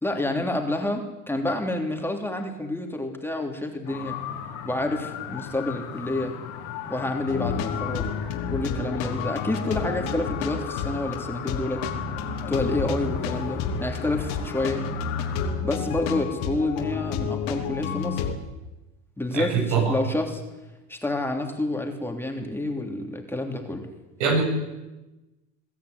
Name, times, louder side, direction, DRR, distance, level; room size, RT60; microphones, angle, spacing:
voice 1, 0.0-4.2 4.6-6.3 6.9-8.1 8.5-11.8 12.5-14.8 15.6-18.2 19.2-20.4 20.9-23.9, left 2 dB, 5° left, 3 dB, 3.1 m, -28 dB
sound 1, 3.8-15.5, left 8 dB, 85° left, 4.3 m, -37 dB
sound 2, 7.3-18.3, left 6 dB, 65° left, 3.5 m, -30 dB
voice 2, 19.3-19.9 24.2-24.4, right 5 dB, 80° right, 3 dB, 7.6 m, -23 dB
23.0 x 13.0 x 9.5 m, 1.1 s
supercardioid pair, 115°, 35 cm